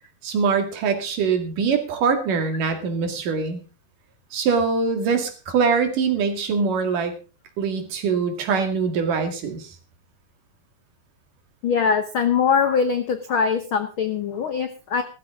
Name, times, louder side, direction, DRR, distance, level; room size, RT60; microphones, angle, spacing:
voice 1, 0.2-3.6 4.3-7.1 7.6-9.7, right 5 dB, 75° right, 6 dB, 3.7 m, -23 dB
voice 2, 11.6-15.0, left 6 dB, 75° left, 8 dB, 1.1 m, -22 dB
16.5 x 13.5 x 3.7 m, 0.34 s
omnidirectional pair, 3.8 m